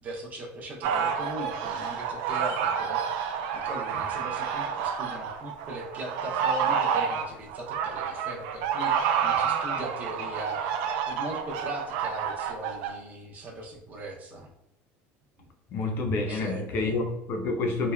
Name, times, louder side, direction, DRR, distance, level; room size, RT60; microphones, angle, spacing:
voice 1, 0.0-10.7 11.0-14.5 16.2-17.0, right 1 dB, 30° right, 0 dB, 0.5 m, -39 dB
sound 1, 0.8-12.9, right 7 dB, 75° right, 0.4 m, -29 dB
voice 2, 15.7-17.9, left 3 dB, 40° left, 4 dB, 0.4 m, -28 dB
3.3 x 2.1 x 2.2 m, 0.88 s
cardioid pair, 150°, 5 cm